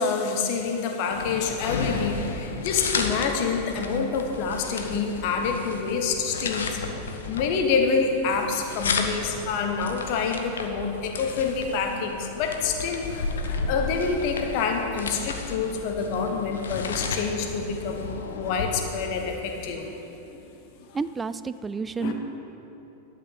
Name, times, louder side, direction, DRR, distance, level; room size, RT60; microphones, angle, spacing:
voice 1, 0.0-6.9 7.3-18.1 18.3-20.0 20.3-20.4 22.0-22.1, left 5 dB, 45° left, 3 dB, 1.2 m, -27 dB
sound 1, 1.1-18.9, left 4 dB, 65° left, 0.9 m, -33 dB
voice 2, 20.9-22.1, right 4 dB, 15° right, 15 dB, 0.3 m, -30 dB
11.5 x 6.0 x 7.7 m, 3.0 s
figure-of-eight pair, 90°, 0 cm